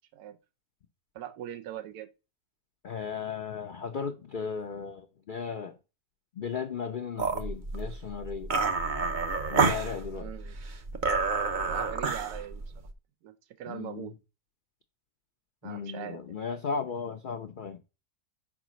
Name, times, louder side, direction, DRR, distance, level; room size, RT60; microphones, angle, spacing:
voice 1, 1.1-2.1 10.1-10.6 11.7-12.6 13.2-14.1 15.6-16.4, right 11 dB, 90° right, 1.1 m, -41 dB
voice 2, 2.8-5.8 6.4-8.5 9.5-10.3 13.7-14.1 15.6-17.8, left 6 dB, 60° left, 0.5 m, -36 dB
sound 1, 7.2-12.9, right 4 dB, 45° right, 0.7 m, -29 dB
4.9 x 4.8 x 6.1 m
omnidirectional pair, 1.6 m